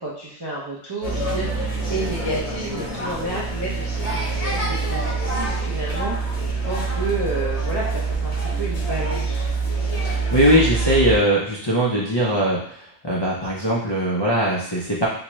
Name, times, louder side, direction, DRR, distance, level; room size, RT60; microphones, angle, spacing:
voice 1, 0.0-9.5, right 2 dB, 35° right, -6 dB, 0.4 m, -31 dB
sound 1, 1.0-11.2, right 3 dB, 70° left, 1.3 m, -25 dB
voice 2, 10.0-12.8 13.0-15.1, equal, 30° left, -6 dB, 0.5 m, -20 dB
4.2 x 2.3 x 3.0 m, 0.63 s
omnidirectional pair, 1.2 m